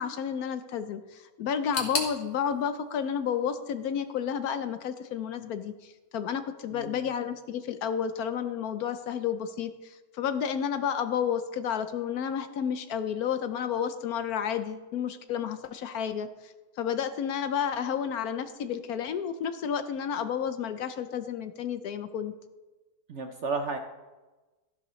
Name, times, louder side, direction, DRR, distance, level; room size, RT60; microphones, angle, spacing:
voice 1, 0.0-22.3, left 8 dB, 70° left, 10 dB, 1.0 m, -31 dB
sound 1, 1.7-4.6 4.9-5.7 6.0-6.1 6.9-7.0, left 2 dB, 35° left, 1.6 m, -38 dB
voice 2, 6.7-7.1 23.1-23.8, right 4 dB, 60° right, 5 dB, 0.8 m, -33 dB
13.5 x 11.0 x 3.1 m, 1.2 s
omnidirectional pair, 1.8 m